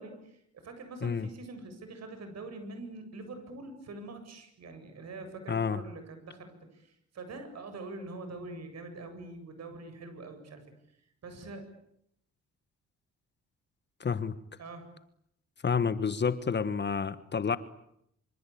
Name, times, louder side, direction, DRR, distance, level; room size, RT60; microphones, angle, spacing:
voice 1, 0.0-10.6 11.2-11.7 14.6-14.9, right 2 dB, 60° right, 8 dB, 7.9 m, -44 dB
voice 2, 5.5-5.8 14.0-14.3 15.6-17.6, left 6 dB, 35° left, 14 dB, 1.5 m, -29 dB
26.0 x 25.0 x 8.7 m, 0.74 s
cardioid pair, 90°, 30 cm